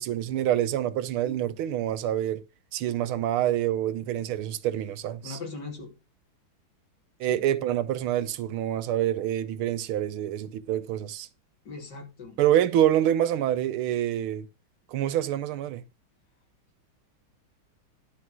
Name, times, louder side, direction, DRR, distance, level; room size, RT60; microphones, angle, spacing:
voice 1, 0.0-2.4 2.7-5.4 7.2-11.3 12.4-14.5 14.9-15.8, right 11 dB, 80° right, 1.6 m, -26 dB
voice 2, 5.2-5.9 7.2-7.4 11.6-12.4, left 4 dB, 50° left, 3.3 m, -39 dB
11.5 x 4.9 x 6.0 m
omnidirectional pair, 2.3 m